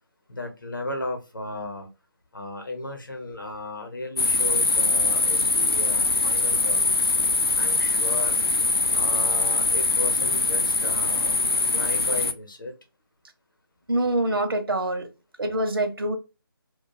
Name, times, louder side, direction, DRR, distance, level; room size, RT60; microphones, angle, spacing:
voice 1, 0.3-1.9 2.3-6.8 7.6-8.4 8.9-11.4 11.7-12.7, left 2 dB, 60° left, 0.8 m, -35 dB
sound 1, 4.2-12.3, left 3 dB, 85° left, 0.4 m, -22 dB
voice 2, 13.9-15.1 15.4-16.2, right 1 dB, 70° right, 0.6 m, -25 dB
2.2 x 2.2 x 2.7 m
figure-of-eight pair, 155°, 12 cm